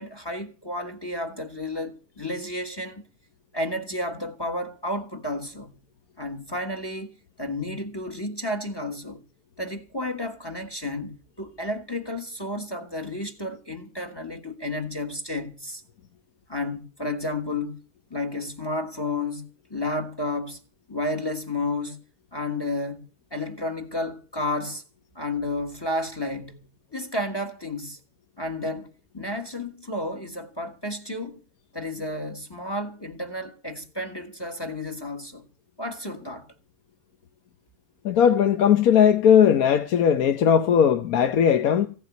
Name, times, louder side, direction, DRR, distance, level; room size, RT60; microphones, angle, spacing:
voice 1, 0.0-3.0 3.5-5.8 6.2-7.1 7.4-9.2 9.6-15.8 16.5-17.8 18.1-20.6 20.9-22.0 22.3-23.0 23.3-24.8 25.1-28.0 28.4-31.4 31.7-35.5 35.8-36.5, left 1 dB, 15° left, 1.4 m, -32 dB
voice 2, 38.0-41.9, left 8 dB, 75° left, 1.3 m, -18 dB
16.0 x 7.1 x 9.4 m
omnidirectional pair, 1.6 m